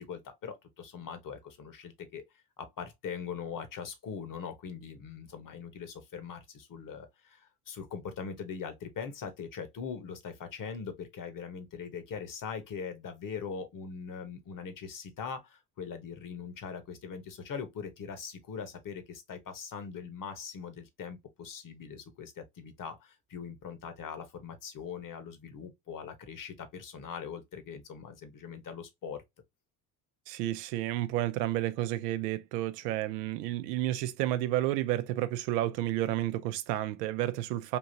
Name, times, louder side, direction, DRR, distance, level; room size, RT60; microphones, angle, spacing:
voice 1, 0.0-2.2 2.6-29.2, left 6 dB, 40° left, 1.2 m, -41 dB
voice 2, 30.3-37.8, right 14 dB, 75° right, 0.6 m, -31 dB
3.5 x 2.8 x 2.8 m
hypercardioid pair, 60°, 48 cm